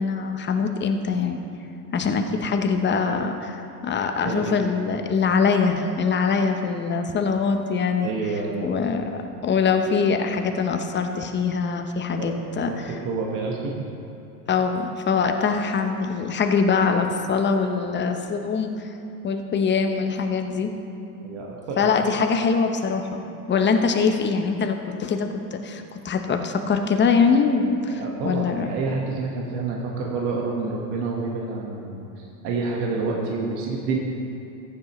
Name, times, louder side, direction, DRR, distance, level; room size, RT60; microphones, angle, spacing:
voice 1, 0.0-1.4 1.9-8.2 8.6-12.9 14.5-18.8 19.2-20.7 21.8-23.2 23.5-28.7, left 5 dB, 25° left, 5 dB, 0.9 m, -23 dB
voice 2, 8.0-8.8 12.2-12.3 12.7-13.8 21.2-21.9 27.9-34.0, right 4 dB, 55° right, -2 dB, 1.6 m, -28 dB
15.0 x 9.3 x 3.2 m, 2.9 s
hypercardioid pair, 90°, 47 cm